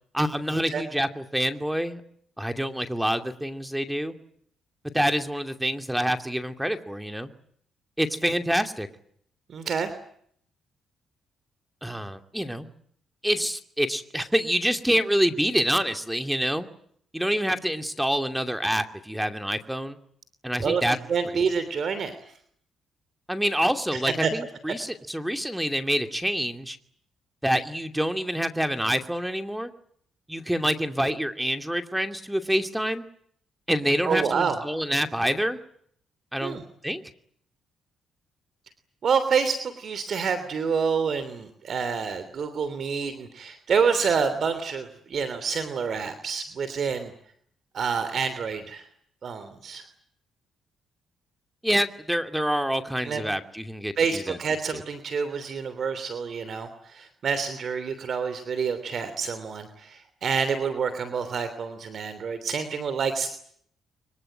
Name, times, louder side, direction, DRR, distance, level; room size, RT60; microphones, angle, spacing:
voice 1, 0.1-2.0 2.4-4.1 4.9-7.3 8.0-8.9 11.8-12.7 13.2-16.7 17.1-20.0 20.4-21.0 23.3-26.8 27.4-29.7 30.3-33.0 33.7-35.6 36.3-36.6 36.8-37.0 51.6-54.4 54.7-54.8, equal, 5° right, 7 dB, 2.6 m, -26 dB
voice 2, 9.5-9.9 20.6-20.8 21.1-22.1 23.9-24.3 34.0-34.6 36.4-36.6 39.0-47.1 47.7-48.9 49.2-49.8 53.0-53.2 54.0-63.3, right 6 dB, 55° right, 11 dB, 3.1 m, -27 dB
25.0 x 23.5 x 8.8 m, 0.65 s
cardioid pair, 90°, 0 cm